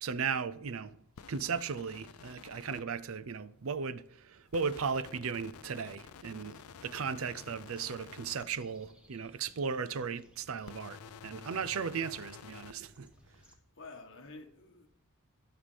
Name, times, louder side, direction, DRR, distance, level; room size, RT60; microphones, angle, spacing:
voice 1, 0.0-1.0 1.3-13.1, right 6 dB, 70° right, 0.5 m, -36 dB
sound 1, 1.2-2.8 4.5-8.5 10.6-12.7, left 7 dB, 85° left, 0.4 m, -51 dB
sound 2, 4.7-13.6, equal, 5° right, 1.4 m, -64 dB
voice 2, 13.3-14.9, left 3 dB, 60° left, 1.6 m, -51 dB
17.5 x 5.8 x 3.4 m
head